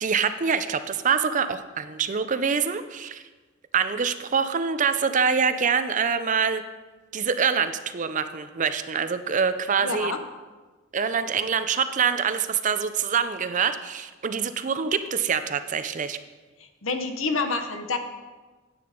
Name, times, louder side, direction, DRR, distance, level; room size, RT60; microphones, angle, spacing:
voice 1, 0.0-3.2 3.7-6.6 7.1-10.1 10.9-16.2, right 6 dB, 35° right, 11 dB, 0.5 m, -25 dB
voice 2, 9.8-10.2 16.8-18.0, left 3 dB, 70° left, 7 dB, 1.0 m, -27 dB
9.7 x 8.8 x 5.1 m, 1.3 s
head